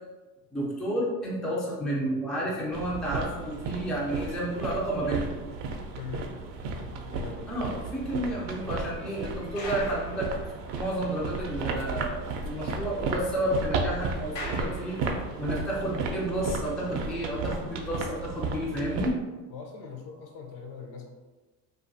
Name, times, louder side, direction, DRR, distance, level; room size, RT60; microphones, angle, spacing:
voice 1, 0.5-5.4 7.5-10.3 10.7-15.0 15.4-19.2, right 1 dB, ahead, -4 dB, 0.3 m, -31 dB
sound 1, 2.7-19.1, right 4 dB, 60° right, 0.6 m, -34 dB
voice 2, 6.0-6.3 6.7-7.5 19.5-21.1, left 6 dB, 55° left, 3 dB, 0.6 m, -41 dB
sound 2, 7.4-11.1 11.4-11.5 11.9-12.0 12.3-15.5 16.2-16.4, left 2 dB, 75° left, 1.1 m, -46 dB
2.5 x 2.4 x 2.5 m, 1.2 s
hypercardioid pair, 80°, 49 cm